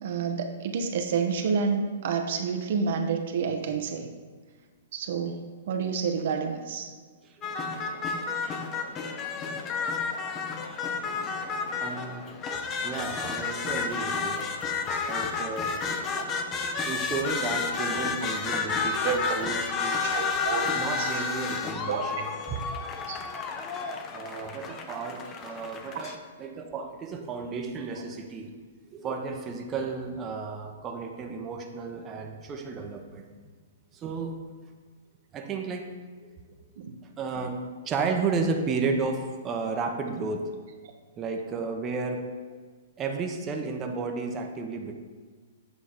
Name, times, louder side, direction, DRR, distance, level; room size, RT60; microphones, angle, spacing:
voice 1, 0.0-4.1 4.9-5.4 5.7-6.9 18.0-18.1 19.0-19.3 20.1-20.7 21.0-21.1 21.9-22.1 23.1-23.2 25.9-26.1 36.8-37.0, right 5 dB, 60° right, 5 dB, 0.7 m, -29 dB
voice 2, 7.2-7.6 11.8-12.2 12.8-14.4 15.1-15.8 16.8-20.0 20.3-20.4 20.7-22.6 24.1-28.5 28.9-33.2 33.9-34.4 35.3-35.9 36.2-36.3 37.2-37.6 37.8-40.5 41.2-42.2 43.0-44.9, right 4 dB, 25° right, 3 dB, 0.8 m, -33 dB
sound 1, 7.4-26.2, left 5 dB, 30° left, 0.7 m, -31 dB
8.0 x 4.0 x 5.0 m, 1.5 s
hypercardioid pair, 125°, 0 cm